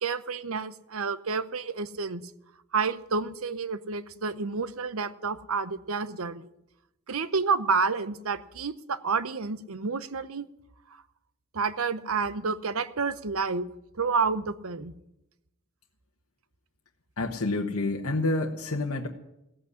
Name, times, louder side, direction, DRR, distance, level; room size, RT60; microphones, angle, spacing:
voice 1, 0.0-2.2 2.7-6.5 7.1-10.5 11.5-13.7 13.9-14.9, right 5 dB, 70° right, 14 dB, 0.9 m, -29 dB
voice 2, 17.2-19.1, left 2 dB, 70° left, 1 dB, 1.2 m, -28 dB
16.5 x 8.4 x 9.7 m, 0.88 s
head